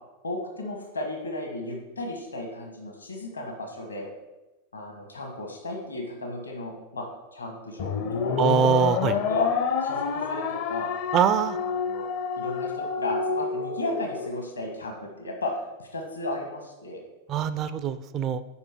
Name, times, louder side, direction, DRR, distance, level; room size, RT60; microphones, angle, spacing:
voice 1, 0.2-4.1 4.7-7.0 7.3-8.4 9.1-9.5 9.8-10.9 11.5-12.1 12.4-15.5 15.8-17.0, left 2 dB, 75° left, 2 dB, 1.3 m, -34 dB
sound 1, 7.8-14.3, left 6 dB, 45° left, 0.5 m, -28 dB
voice 2, 8.4-9.1 11.1-11.6 17.3-18.4, right 8 dB, 35° right, 12 dB, 0.4 m, -23 dB
7.3 x 4.9 x 4.6 m, 1.1 s
figure-of-eight pair, 90°, 0 cm